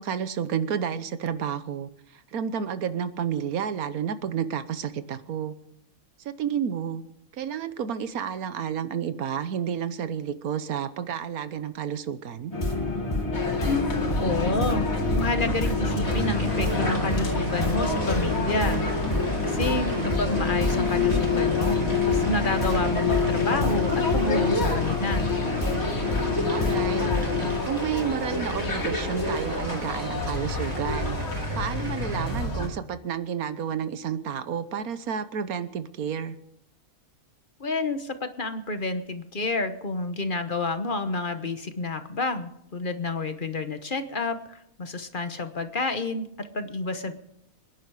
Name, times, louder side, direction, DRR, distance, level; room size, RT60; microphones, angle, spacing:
voice 1, 0.0-1.9 2.3-5.5 6.2-7.0 7.4-12.5 26.3-27.1 27.6-31.2 31.5-36.4, right 8 dB, 90° right, 13 dB, 1.4 m, -30 dB
sound 1, 12.5-27.6, left 4 dB, 20° left, 2.3 m, -27 dB
sound 2, 13.3-32.7, left 2 dB, 75° left, 2.9 m, -30 dB
voice 2, 13.7-14.9 15.2-18.8 19.4-21.8 22.1-25.2 37.6-47.1, left 3 dB, 40° left, 9 dB, 1.1 m, -29 dB
sound 3, 16.0-32.4, right 1 dB, 25° right, 2.2 m, -37 dB
25.5 x 10.5 x 4.8 m, 0.78 s
omnidirectional pair, 1.5 m